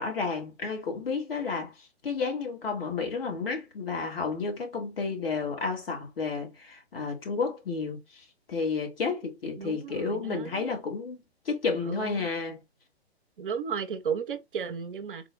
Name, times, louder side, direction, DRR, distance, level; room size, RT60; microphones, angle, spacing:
voice 1, 0.0-12.6, left 4 dB, 60° left, 1.6 m, -31 dB
voice 2, 9.6-10.7 11.8-12.3 13.4-15.3, right 6 dB, 55° right, 0.7 m, -34 dB
3.8 x 2.2 x 3.5 m
figure-of-eight pair, 120°, 33 cm